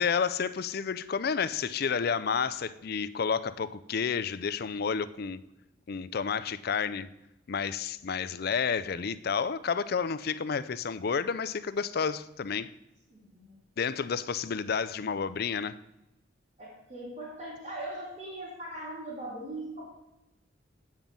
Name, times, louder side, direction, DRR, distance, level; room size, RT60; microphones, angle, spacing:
voice 1, 0.0-5.4 5.9-7.1 7.5-12.7 13.8-15.8, left 6 dB, 50° left, 14 dB, 0.4 m, -30 dB
voice 2, 13.1-13.6 14.0-14.1 16.6-19.8, right 1 dB, 35° right, -7 dB, 3.4 m, -40 dB
9.0 x 5.4 x 7.4 m, 0.91 s
head